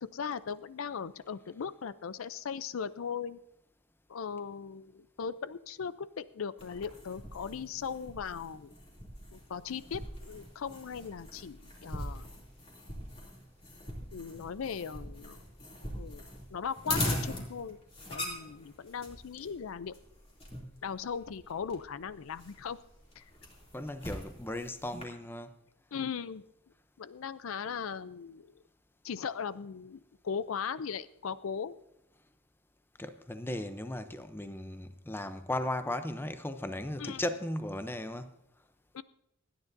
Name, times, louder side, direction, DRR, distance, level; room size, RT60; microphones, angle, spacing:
voice 1, 0.0-3.4 4.1-8.7 9.3-12.3 14.1-15.4 16.0-16.2 16.5-17.8 18.1-19.9 20.8-22.8 23.2-23.3 25.9-26.4 27.0-28.5 29.0-31.7 37.0-37.2 38.9-39.0, left 6 dB, 70° left, 0.5 m, -38 dB
sound 1, 6.6-25.0, left 1 dB, 25° left, 2.8 m, -41 dB
voice 2, 23.7-25.5 33.0-38.3, left 1 dB, 10° left, 0.6 m, -36 dB
27.5 x 9.8 x 2.6 m
head